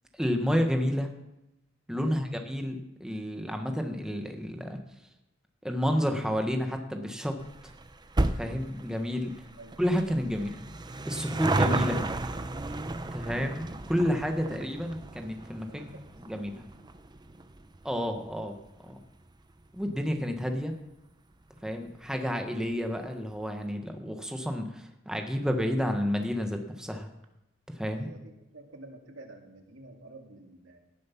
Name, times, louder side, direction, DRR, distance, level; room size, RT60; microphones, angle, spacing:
voice 1, 0.2-1.1 1.9-4.8 5.6-7.4 7.6-7.7 8.4-9.3 9.8-10.6 11.0-12.0 13.1-15.9 16.2-16.6 17.8-18.5 18.8-19.0 19.7-20.7 21.6-27.1 27.8-28.1, equal, 5° right, 4 dB, 1.2 m, -30 dB
sound 1, 7.4-20.1 20.4-20.5 21.4-21.5 21.7-21.8 22.1-22.2, right 2 dB, 20° right, 0.6 m, -34 dB
voice 2, 15.7-16.5 27.9-30.8, right 2 dB, 85° right, 3 dB, 2.0 m, -49 dB
17.5 x 7.6 x 5.8 m, 0.90 s
head